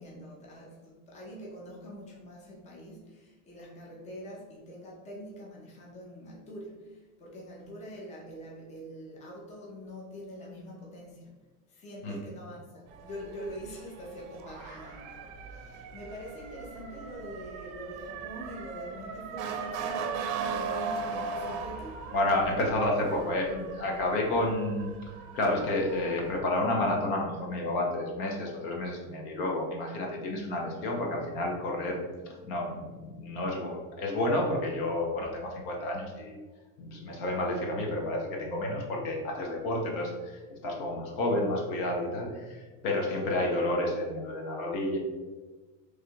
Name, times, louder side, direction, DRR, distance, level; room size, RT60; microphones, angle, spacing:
voice 1, 0.0-11.3 11.7-15.2 15.5-22.0, equal, 15° left, -4 dB, 0.8 m, -44 dB
Motor vehicle (road) / Siren, 12.9-26.4, right 5 dB, 55° right, 0.6 m, -38 dB
voice 2, 22.1-24.9 25.3-32.0 32.3-36.3 36.8-45.0, left 1 dB, 55° left, 0 dB, 1.1 m, -30 dB
3.3 x 2.6 x 4.5 m, 1.3 s
supercardioid pair, 140°, 42 cm